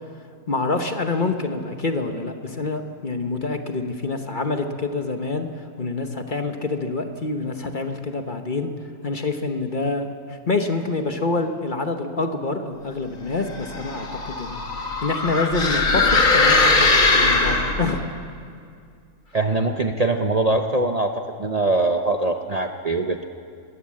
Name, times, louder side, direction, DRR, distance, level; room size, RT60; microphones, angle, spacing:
voice 1, 0.5-8.7 9.0-14.6 15.0-18.0, left 3 dB, 35° left, 6 dB, 1.2 m, -26 dB
sound 1, 13.5-18.0, left 3 dB, 65° left, 2.2 m, -20 dB
voice 2, 19.3-23.2, right 2 dB, 35° right, 4 dB, 0.8 m, -22 dB
21.5 x 16.0 x 7.6 m, 2.3 s
omnidirectional pair, 1.5 m